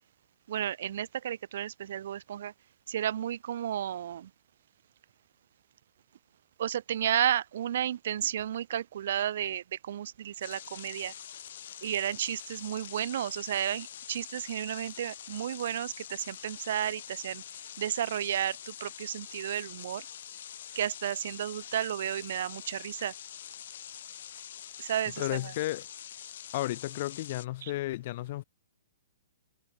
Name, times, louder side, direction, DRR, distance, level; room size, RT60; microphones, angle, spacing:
voice 1, 0.5-2.5 2.9-4.3 6.6-11.1 11.8-17.4 17.8-20.0 20.8-23.1 24.8-25.5 27.6-27.7, right 10 dB, 50° right, 0.5 m, -32 dB
sound 1, 10.4-27.5, left 10 dB, 50° left, 6.3 m, -45 dB
voice 2, 25.2-25.8 26.5-28.4, left 16 dB, 35° left, 1.8 m, -33 dB
hypercardioid pair, 175°, 0 cm